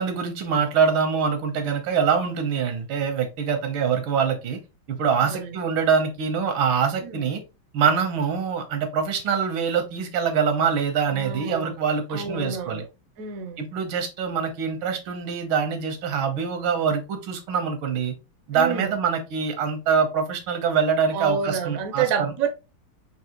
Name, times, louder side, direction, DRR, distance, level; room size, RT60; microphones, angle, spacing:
voice 1, 0.0-4.6 4.9-7.4 7.7-12.8 13.6-18.1 18.5-22.3, right 6 dB, 85° right, 1.8 m, -24 dB
voice 2, 11.1-11.7 12.1-12.8 13.2-13.6 18.5-19.0 21.1-22.5, right 6 dB, 65° right, 0.9 m, -28 dB
4.7 x 2.8 x 2.9 m
omnidirectional pair, 2.2 m